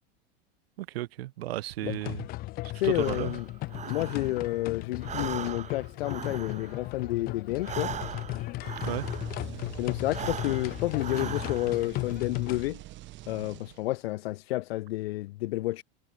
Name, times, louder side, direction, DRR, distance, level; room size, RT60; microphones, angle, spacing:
voice 1, 0.8-2.3 2.8-3.4 8.8-9.1, right 16 dB, 85° right, 1.1 m, -34 dB
sound 1, 1.9-12.7, left 19 dB, 30° left, 0.5 m, -36 dB
voice 2, 2.8-3.5 3.9-7.9 9.8-12.8 13.3-15.8, left 17 dB, 85° left, 0.9 m, -30 dB
Breathing, 2.9-4.6 4.9-9.5 10.0-11.9, right 9 dB, 25° right, 3.0 m, -40 dB
sound 2, 8.6-14.1, right 16 dB, 40° right, 4.6 m, -44 dB
supercardioid pair, 145°, 30 cm